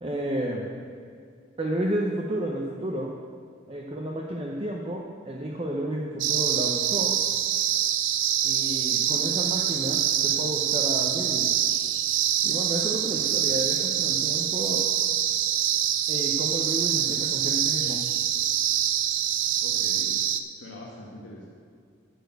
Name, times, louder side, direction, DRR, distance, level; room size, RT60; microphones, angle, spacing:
voice 1, 0.0-0.7 1.6-3.1 3.7-7.2 8.4-11.5 12.4-14.9 16.1-18.0, right 1 dB, 30° right, -2 dB, 0.7 m, -31 dB
sound 1, 6.2-20.4, right 10 dB, 75° right, 0.5 m, -25 dB
voice 2, 19.6-20.1 20.6-21.5, left 1 dB, 70° left, -4 dB, 1.3 m, -42 dB
11.5 x 4.5 x 7.9 m, 2.3 s
head